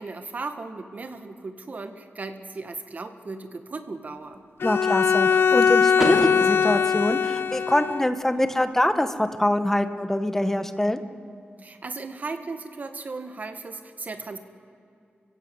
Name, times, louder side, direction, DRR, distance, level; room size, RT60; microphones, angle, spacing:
voice 1, 0.0-4.4 11.6-14.4, right 3 dB, 45° right, 7 dB, 1.6 m, -36 dB
Bowed string instrument, 4.6-8.1, left 6 dB, 75° left, 0.5 m, -21 dB
voice 2, 4.6-11.0, left 1 dB, 10° left, 9 dB, 1.1 m, -24 dB
Car / Door, 5.9-7.9, right 1 dB, 10° right, 2.8 m, -31 dB
30.0 x 16.5 x 8.0 m, 2.5 s
wide cardioid pair, 150°, 4 cm